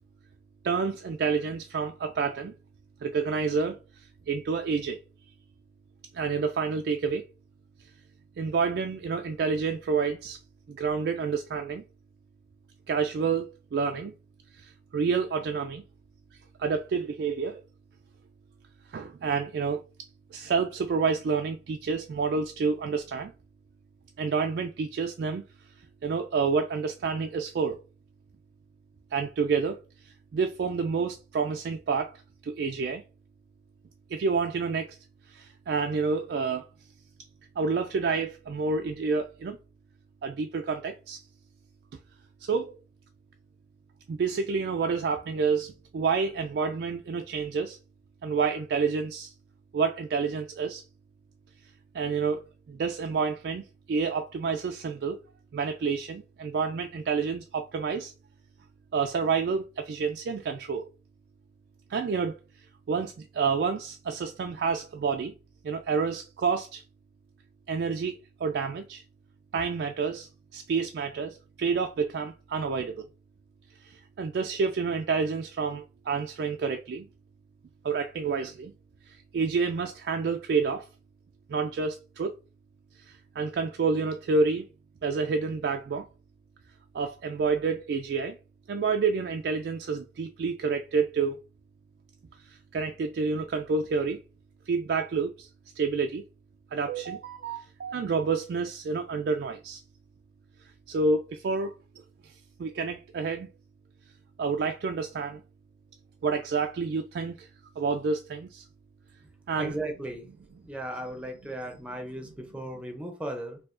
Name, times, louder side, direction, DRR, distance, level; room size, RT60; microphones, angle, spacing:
voice 1, 0.6-2.5 3.0-5.0 6.1-7.2 8.4-10.4 10.7-11.8 12.9-14.1 14.5-15.8 16.6-17.6 18.9-19.8 20.3-23.3 24.2-25.4 26.0-27.8 29.1-32.1 32.4-33.0 34.1-35.0 35.3-36.7 37.6-39.6 40.2-41.2 42.4-42.8 44.1-47.8 48.2-49.3 49.7-50.8 51.9-55.2 55.5-58.1 58.9-60.9 61.9-62.4 62.9-65.3 65.6-66.8 67.7-69.0 69.5-73.1 73.8-77.1 77.8-78.7 79.1-80.9 81.5-82.3 83.0-84.7 85.0-86.1 86.9-88.4 88.7-91.4 92.4-94.2 94.7-95.5 95.8-96.2 96.7-99.8 100.9-101.8 102.2-102.3 102.6-103.5 104.4-105.4 106.2-107.5 107.8-108.7 109.5-109.8, right 5 dB, 65° right, 0.3 m, -29 dB
voice 2, 109.6-110.3 110.6-113.6, right 1 dB, 5° right, 0.6 m, -36 dB
4.5 x 2.7 x 2.5 m
head